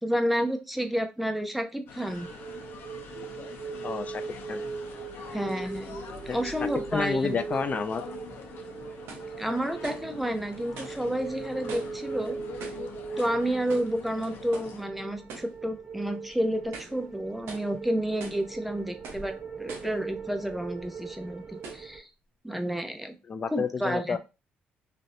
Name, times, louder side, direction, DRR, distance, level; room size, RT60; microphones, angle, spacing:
voice 1, 0.0-2.3 5.3-6.0 6.2-7.4 9.4-12.4 13.2-22.1 22.4-23.2 23.5-24.2, equal, 5° right, 6 dB, 0.6 m, -30 dB
sound 1, 1.9-14.9, left 6 dB, 70° left, 0.7 m, -45 dB
sound 2, 2.1-22.0, right 5 dB, 40° right, 0.7 m, -40 dB
voice 2, 3.8-4.2 4.5-4.6 6.3-6.4 6.9-8.0 23.3-24.2, left 5 dB, 40° left, 10 dB, 0.4 m, -30 dB
sound 3, 9.1-9.3 9.8-10.1 10.8-11.0 11.7-12.0 12.6-12.9 13.7-14.0 14.5-14.8 15.3-15.6 16.0-16.1 16.6-17.0 17.5-17.7 18.2-18.5 19.0-19.3 19.7-20.0 20.7-20.8 21.6-21.9, right 4 dB, 85° right, 0.8 m, -43 dB
3.2 x 2.6 x 2.6 m, 0.28 s
cardioid pair, 85°, 4 cm